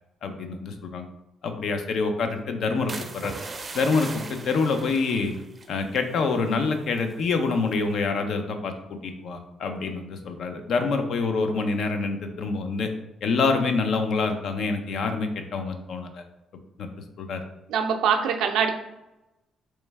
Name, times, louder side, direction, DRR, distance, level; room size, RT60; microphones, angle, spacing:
voice 1, 0.2-1.0 1.4-3.3 3.7-5.3 5.7-12.9 13.2-16.2 16.8-16.9 17.2-17.4, left 4 dB, 70° left, 6 dB, 0.5 m, -26 dB
sound 1, 2.9-6.6 6.9-7.3 7.7-8.0, right 3 dB, 30° right, 0.5 m, -39 dB
voice 2, 17.7-18.7, right 7 dB, 85° right, 4 dB, 0.4 m, -23 dB
3.2 x 3.2 x 3.3 m, 0.94 s
cardioid pair, 90°, 0 cm